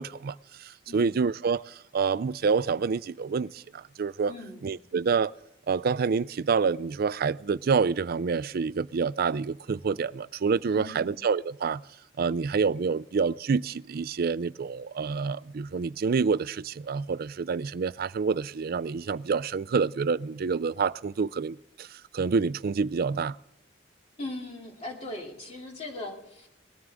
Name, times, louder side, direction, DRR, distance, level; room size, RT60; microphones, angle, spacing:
voice 1, 0.0-4.3 4.6-5.3 5.7-11.8 12.2-23.4, right 5 dB, 55° right, 0.4 m, -27 dB
voice 2, 0.9-1.3 4.3-4.7 10.7-11.2 24.2-26.5, left 2 dB, 35° left, 2.8 m, -39 dB
20.5 x 13.0 x 3.5 m
head